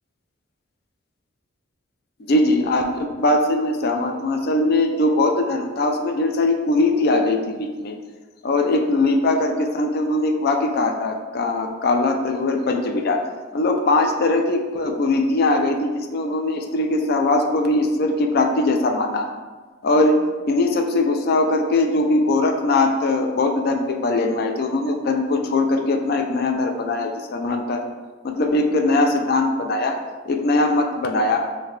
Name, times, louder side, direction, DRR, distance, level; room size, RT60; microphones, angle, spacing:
voice 1, 2.2-8.0 8.4-13.2 13.5-19.3 19.8-27.8 28.2-30.0 30.3-31.5, left 2 dB, 50° left, 3 dB, 0.4 m, -21 dB
5.6 x 2.2 x 3.1 m, 1.3 s
head